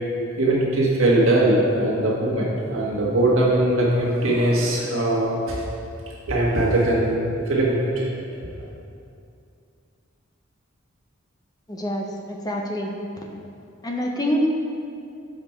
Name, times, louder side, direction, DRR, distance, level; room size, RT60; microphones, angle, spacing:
voice 1, 0.4-5.6 6.3-8.1, right 1 dB, 70° right, -5 dB, 1.6 m, -21 dB
voice 2, 11.7-12.9 13.8-14.5, equal, 20° left, 0 dB, 0.6 m, -26 dB
7.1 x 5.1 x 4.5 m, 2.5 s
head